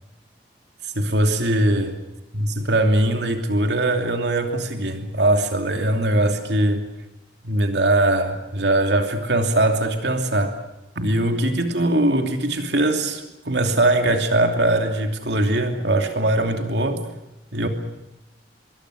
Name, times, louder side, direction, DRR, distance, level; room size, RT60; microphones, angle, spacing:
voice 1, 0.9-2.0 2.3-6.8 7.4-10.6 11.0-17.0 17.5-17.7, right 1 dB, 65° right, 5 dB, 2.8 m, -21 dB
26.0 x 23.5 x 6.5 m, 0.95 s
head